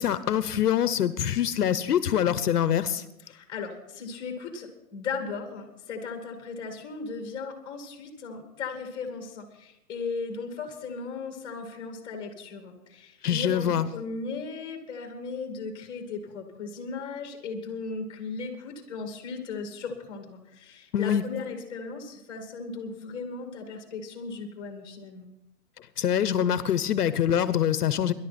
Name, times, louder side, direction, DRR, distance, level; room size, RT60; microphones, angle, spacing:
voice 1, 0.0-3.0 13.2-13.9 20.9-21.2 25.8-28.1, left 9 dB, 70° left, 14 dB, 0.9 m, -25 dB
voice 2, 3.3-25.3, left 4 dB, 10° left, 5 dB, 1.8 m, -37 dB
20.0 x 11.5 x 4.3 m, 0.86 s
hypercardioid pair, 160°, 48 cm